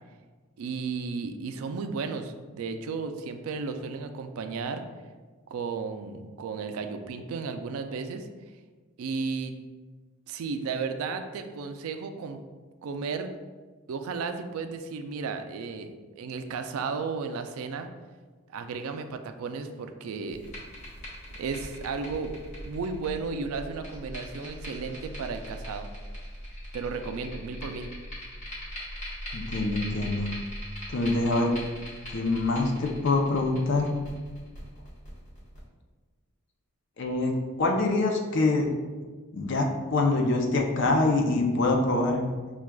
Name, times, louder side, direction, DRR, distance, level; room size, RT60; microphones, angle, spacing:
voice 1, 0.6-4.8 5.5-8.3 9.0-9.5 10.3-12.4 12.8-13.3 13.9-17.9 18.5-20.5 21.3-22.3 22.7-25.9 26.7-27.9, right 4 dB, 75° right, 7 dB, 0.3 m, -34 dB
sound 1, 20.3-35.6, equal, 35° left, 1.0 m, -40 dB
voice 2, 29.3-30.3 30.9-31.5 32.1-33.9 37.0-37.3 37.6-38.7 39.3-42.2, left 2 dB, 55° left, 1 dB, 0.5 m, -25 dB
5.9 x 2.3 x 2.2 m, 1.4 s
head